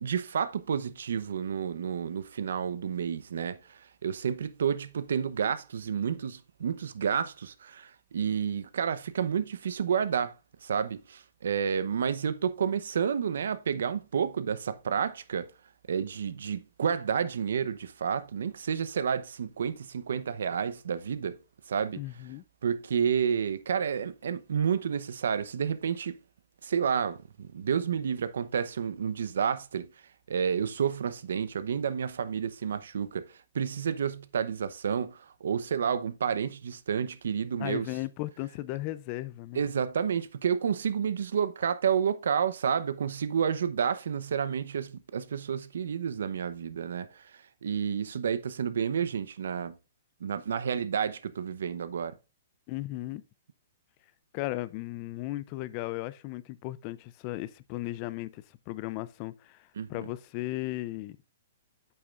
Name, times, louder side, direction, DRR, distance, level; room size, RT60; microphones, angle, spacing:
voice 1, 0.0-10.3 10.6-15.5 15.9-21.4 21.7-22.0 22.6-26.2 26.6-29.9 30.3-33.3 33.5-37.9 39.5-47.2 47.6-49.7 50.2-52.2 59.8-59.9, right 7 dB, 75° right, 0.8 m, -30 dB
voice 2, 22.0-22.4 37.6-39.6 52.7-53.2 54.3-61.2, left 17 dB, 30° left, 0.4 m, -36 dB
8.7 x 6.9 x 2.5 m
hypercardioid pair, 165°, 0 cm